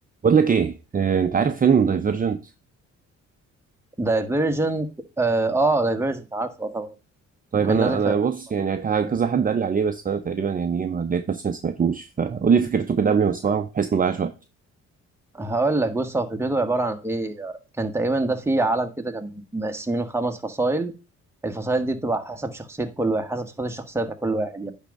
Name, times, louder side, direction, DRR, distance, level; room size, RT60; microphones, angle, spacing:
voice 1, 0.2-2.4 7.5-14.3, right 6 dB, 30° right, 0.6 m, -22 dB
voice 2, 4.0-4.9 5.2-6.9 7.7-8.1 9.0-9.1 15.3-20.9 21.4-24.7, right 2 dB, 10° right, 1.2 m, -25 dB
9.9 x 3.6 x 5.2 m
cardioid pair, 90°, 30 cm